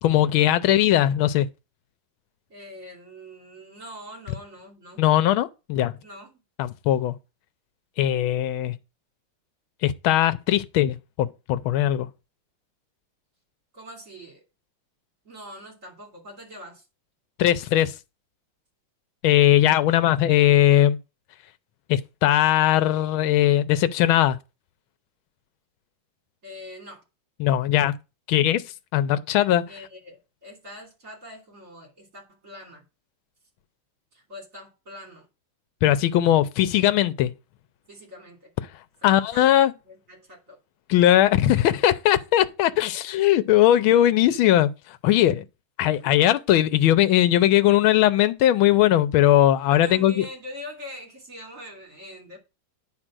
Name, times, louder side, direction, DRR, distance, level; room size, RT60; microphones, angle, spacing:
voice 1, 0.0-1.5 5.0-5.9 6.6-7.1 8.0-8.7 9.8-12.1 17.4-17.9 19.2-21.0 21.9-24.4 27.4-27.9 28.3-28.6 28.9-29.6 35.8-37.3 39.0-39.7 40.9-45.4 45.8-50.2, left 12 dB, 80° left, 1.5 m, -19 dB
voice 2, 2.5-5.0 6.0-6.4 13.7-14.4 15.2-16.8 26.4-27.0 29.6-32.8 34.1-35.3 37.9-38.5 39.0-39.5 39.8-40.6 49.7-52.4, left 1 dB, 40° right, 3.3 m, -43 dB
9.9 x 4.0 x 6.1 m
omnidirectional pair, 2.2 m